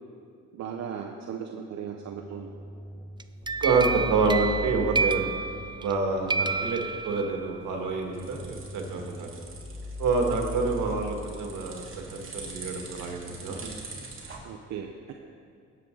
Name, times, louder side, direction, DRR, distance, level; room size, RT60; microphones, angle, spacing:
voice 1, 0.5-2.5 14.4-15.1, right 7 dB, 65° right, 2 dB, 0.9 m, -37 dB
sound 1, 1.9-13.9, left 2 dB, 10° left, 1.5 m, -41 dB
sound 2, 3.2-6.0 6.3-7.6, right 4 dB, 15° right, 0.4 m, -30 dB
voice 2, 3.6-5.3 5.8-9.3 10.0-13.7, right 4 dB, 85° right, 2 dB, 1.9 m, -27 dB
sound 3, 7.6-14.4, right 3 dB, 45° right, 2.3 m, -44 dB
18.0 x 7.7 x 3.9 m, 2.3 s
cardioid pair, 90°, 30 cm